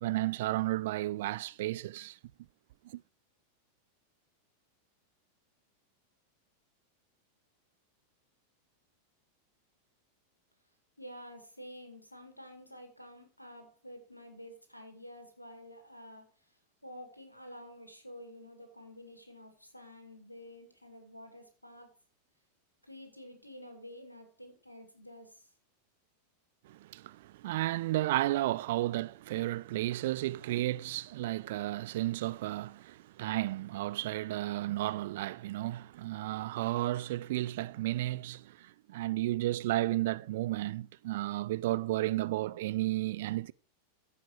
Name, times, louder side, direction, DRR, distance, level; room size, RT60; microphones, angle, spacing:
voice 1, 0.0-2.2 2.8-3.0 26.6-43.5, right 16 dB, 55° right, 0.4 m, -33 dB
voice 2, 11.0-16.3 16.8-21.9 22.8-25.5, equal, 90° left, 2.1 m, -50 dB
14.5 x 5.2 x 4.9 m
figure-of-eight pair, 90°, 0 cm